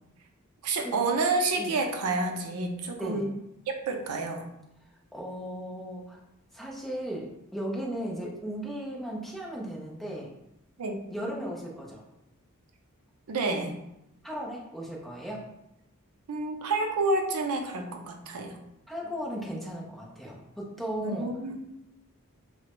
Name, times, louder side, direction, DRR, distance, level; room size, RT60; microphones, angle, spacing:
voice 1, 0.6-3.3 3.9-4.5 10.8-11.0 13.3-13.7 16.3-18.6 21.0-21.6, right 3 dB, 90° right, 4 dB, 0.5 m, -29 dB
voice 2, 5.1-6.2 6.5-10.3 11.1-12.0 14.2-15.4 18.9-21.3, equal, ahead, -3 dB, 0.5 m, -36 dB
3.3 x 2.0 x 2.9 m, 0.86 s
head